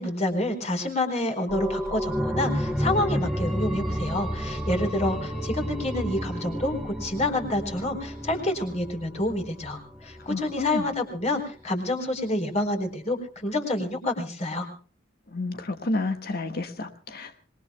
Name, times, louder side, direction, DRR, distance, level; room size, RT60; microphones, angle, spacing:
voice 1, 0.0-14.7, left 1 dB, 30° left, 4 dB, 4.3 m, -28 dB
sound 1, 1.5-10.8 11.2-11.3, equal, ahead, 1.9 m, -31 dB
voice 2, 10.2-10.9 15.3-17.4, left 2 dB, 45° left, 7 dB, 1.4 m, -30 dB
26.5 x 21.5 x 2.2 m, 0.40 s
head